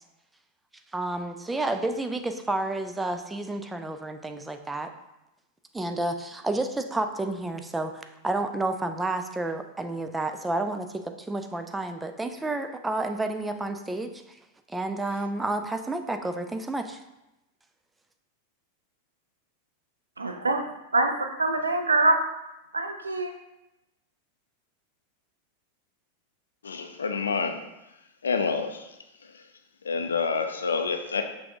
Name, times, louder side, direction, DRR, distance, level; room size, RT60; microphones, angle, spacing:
voice 1, 0.9-4.9 5.7-14.4 14.7-17.0, right 2 dB, 10° right, 0.4 m, -30 dB
voice 2, 20.2-20.7 20.9-22.2 22.7-23.3, right 2 dB, 75° right, 0.5 m, -24 dB
voice 3, 26.6-27.6 28.2-28.9 29.8-31.2, left 5 dB, 70° left, 0.4 m, -28 dB
5.7 x 2.7 x 3.4 m
figure-of-eight pair, 90°, 0 cm